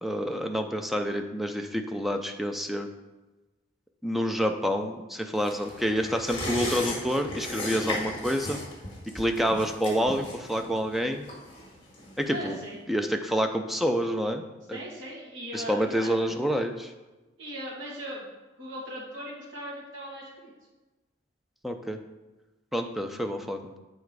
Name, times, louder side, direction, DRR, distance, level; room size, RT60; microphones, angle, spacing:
voice 1, 0.0-2.9 4.0-8.6 9.1-11.3 12.2-12.6 12.9-14.8 15.5-16.9 21.6-22.0 22.7-23.8, equal, ahead, 5 dB, 0.4 m, -28 dB
sound 1, 5.4-12.5 12.8-12.9, left 2 dB, 25° left, 1.6 m, -36 dB
voice 2, 12.3-12.8 14.7-16.3 17.4-18.3 18.6-20.5, equal, 80° right, -6 dB, 2.1 m, -39 dB
7.1 x 4.3 x 4.7 m, 1.1 s
head